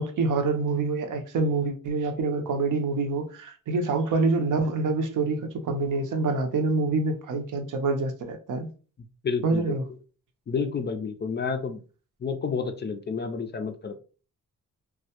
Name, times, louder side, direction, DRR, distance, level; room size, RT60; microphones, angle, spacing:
voice 1, 0.0-8.7 9.4-9.8, right 3 dB, 70° right, 0.6 m, -26 dB
voice 2, 9.2-9.8 10.5-11.8 12.2-14.0, left 5 dB, 35° left, 0.4 m, -30 dB
2.1 x 2.1 x 2.8 m
cardioid pair, 75°, 33 cm